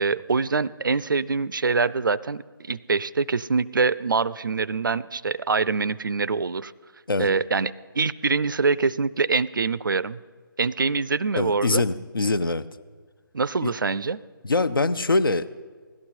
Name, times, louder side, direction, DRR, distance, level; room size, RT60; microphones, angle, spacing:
voice 1, 0.0-6.7 7.2-10.2 10.6-11.8 13.3-14.2, right 4 dB, 65° right, 20 dB, 0.4 m, -24 dB
voice 2, 11.4-12.7 13.6-13.7 14.4-15.6, left 3 dB, 70° left, 14 dB, 0.6 m, -23 dB
17.0 x 12.0 x 4.4 m, 1.5 s
figure-of-eight pair, 150°, 12 cm